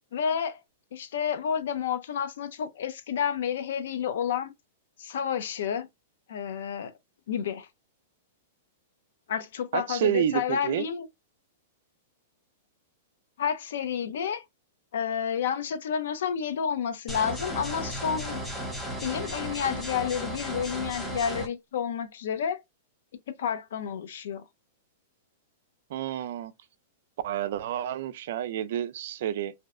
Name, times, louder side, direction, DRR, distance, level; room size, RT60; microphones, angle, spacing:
voice 1, 0.1-0.6 0.9-4.5 5.0-5.9 6.3-6.9 7.3-7.7 9.3-11.1 13.4-14.4 14.9-18.4 19.0-22.6 23.3-24.4, left 8 dB, 75° left, 0.5 m, -30 dB
voice 2, 9.7-10.8 25.9-26.5 27.2-29.5, right 11 dB, 60° right, 0.3 m, -29 dB
sound 1, 17.1-21.5, equal, 5° left, 0.6 m, -35 dB
2.6 x 2.1 x 2.4 m
hypercardioid pair, 150°, 0 cm